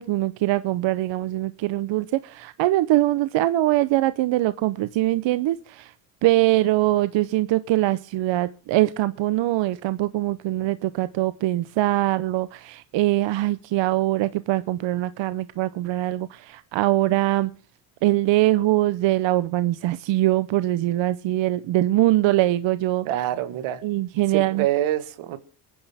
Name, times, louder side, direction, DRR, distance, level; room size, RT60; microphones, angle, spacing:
voice 1, 0.0-5.9 6.2-17.5 18.0-23.1 23.8-24.7, right 16 dB, 65° right, 14 dB, 0.8 m, -22 dB
voice 2, 23.0-23.8 24.3-25.4, right 13 dB, 80° right, 12 dB, 1.6 m, -26 dB
22.5 x 10.5 x 3.5 m, 0.36 s
supercardioid pair, 80°, 48 cm